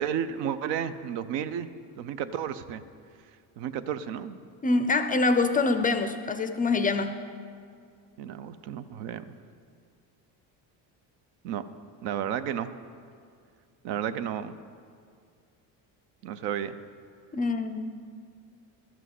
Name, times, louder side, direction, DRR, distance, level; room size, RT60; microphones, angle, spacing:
voice 1, 0.0-1.7 2.0-2.8 3.6-4.4 8.2-9.2 11.4-11.7 12.0-12.7 13.8-14.6 16.2-16.8, right 9 dB, 75° right, 13 dB, 0.7 m, -32 dB
voice 2, 4.6-7.2 17.3-17.9, left 3 dB, 20° left, 9 dB, 0.4 m, -25 dB
12.5 x 6.1 x 7.6 m, 2.2 s
cardioid pair, 125°, 42 cm